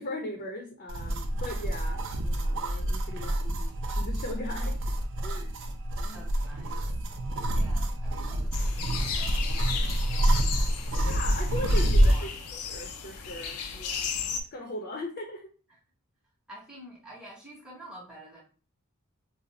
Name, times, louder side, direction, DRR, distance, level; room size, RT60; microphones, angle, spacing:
voice 1, 0.0-3.7 4.0-4.8 5.2-5.6 6.0-6.3 11.1-14.2 14.5-15.5, left 1 dB, 45° left, 1 dB, 0.6 m, -39 dB
sound 1, 0.9-12.3, right 1 dB, 60° right, 0.5 m, -27 dB
voice 2, 6.1-6.8 7.5-11.1 11.8-12.4 16.5-18.4, right 1 dB, 5° right, -4 dB, 0.8 m, -49 dB
sound 2, 8.5-14.4, left 7 dB, 90° left, 0.5 m, -35 dB
2.7 x 2.4 x 3.9 m, 0.37 s
head